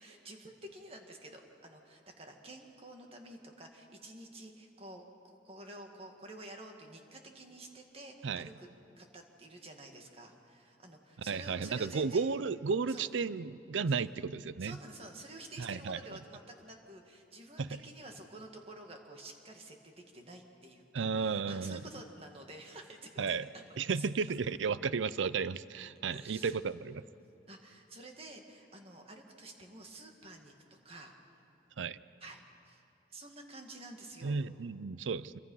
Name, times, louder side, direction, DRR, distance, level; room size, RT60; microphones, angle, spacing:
voice 1, 0.0-8.7 9.0-12.3 12.9-13.1 13.9-14.0 14.6-24.1 26.1-26.8 27.5-31.4 32.2-32.8 33.1-34.4, right 2 dB, 30° right, 3 dB, 2.0 m, -50 dB
voice 2, 11.3-14.8 15.6-16.0 17.6-17.8 20.9-21.8 23.2-23.4 23.8-27.0 31.8-32.0 34.2-35.4, right 5 dB, 85° right, 16 dB, 0.5 m, -33 dB
27.0 x 24.0 x 5.6 m, 2.7 s
head